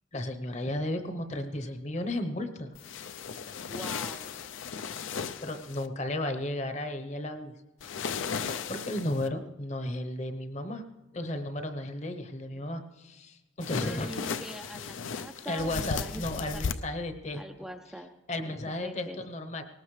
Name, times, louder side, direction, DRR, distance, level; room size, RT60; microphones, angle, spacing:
voice 1, 0.1-2.7 5.4-7.5 8.7-10.8 11.1-14.1 15.4-17.4 18.3-19.6, left 1 dB, 35° left, 8 dB, 0.9 m, -34 dB
sound 1, 2.7-5.9 7.8-9.3 13.6-16.7, left 6 dB, 75° left, 0.5 m, -36 dB
voice 2, 3.7-4.4 13.8-16.8 17.3-18.1 18.4-19.2, equal, 5° right, 4 dB, 0.4 m, -43 dB
19.5 x 18.0 x 3.2 m, 1.1 s
head